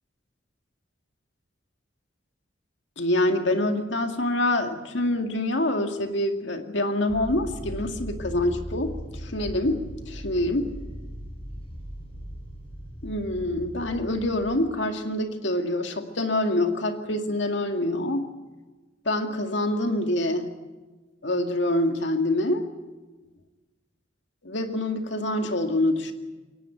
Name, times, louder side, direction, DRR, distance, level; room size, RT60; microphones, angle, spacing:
voice 1, 3.0-8.9 9.2-10.8 13.0-18.3 19.1-20.5 21.2-22.7 24.4-26.1, left 1 dB, 65° left, 5 dB, 2.2 m, -26 dB
sound 1, 7.1-14.5, equal, 30° left, 7.6 m, -38 dB
22.5 x 18.5 x 9.0 m, 1.3 s
head